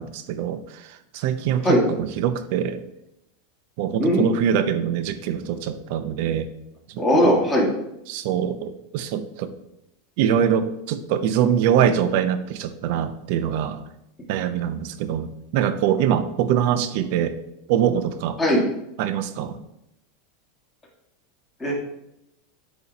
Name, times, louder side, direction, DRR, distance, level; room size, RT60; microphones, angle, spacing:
voice 1, 0.0-2.8 3.8-6.5 6.9-7.4 8.1-9.5 10.2-13.8 14.3-15.3 15.5-17.4 17.7-18.4 19.0-19.6, right 9 dB, 60° right, 11 dB, 0.6 m, -23 dB
voice 2, 7.0-7.7 18.4-18.6 21.6-21.7, left 1 dB, 15° left, -2 dB, 1.6 m, -18 dB
8.4 x 2.9 x 3.9 m, 0.83 s
supercardioid pair, 140°, 0 cm